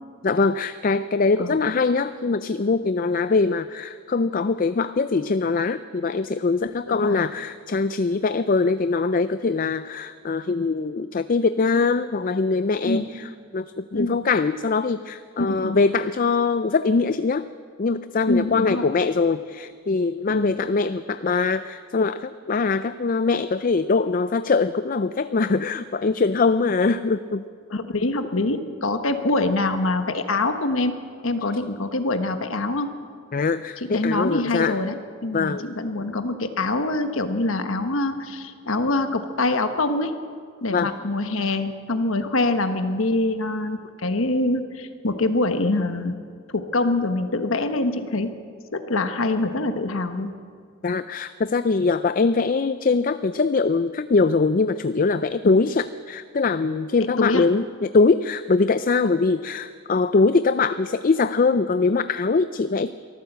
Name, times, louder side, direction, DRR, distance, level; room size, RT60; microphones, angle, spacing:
voice 1, 0.2-17.5 17.8-27.4 33.3-34.8 35.3-35.7 40.7-40.9 50.8-62.9, left 4 dB, 40° left, 12 dB, 0.4 m, -22 dB
voice 2, 6.9-7.2 12.8-13.1 13.9-14.2 15.4-15.8 18.3-18.8 20.3-20.5 27.7-32.9 33.8-35.0 35.2-40.1 40.6-46.1 46.5-48.3 48.7-50.3 55.4-55.6 57.2-57.4 59.0-59.1, left 2 dB, 80° left, 8 dB, 1.3 m, -24 dB
24.0 x 14.0 x 8.0 m, 2.1 s
head